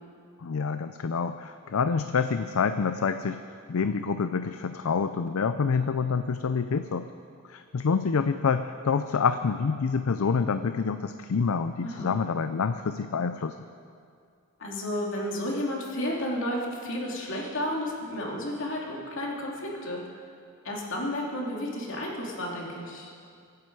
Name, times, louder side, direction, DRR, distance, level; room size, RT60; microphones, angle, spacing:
voice 1, 0.4-3.4 3.7-7.1 7.4-13.6, left 5 dB, 80° left, 10 dB, 0.5 m, -27 dB
voice 2, 11.8-12.1 14.6-20.0 20.6-23.1, left 1 dB, 65° left, -2 dB, 2.8 m, -32 dB
24.0 x 9.6 x 4.8 m, 2.3 s
head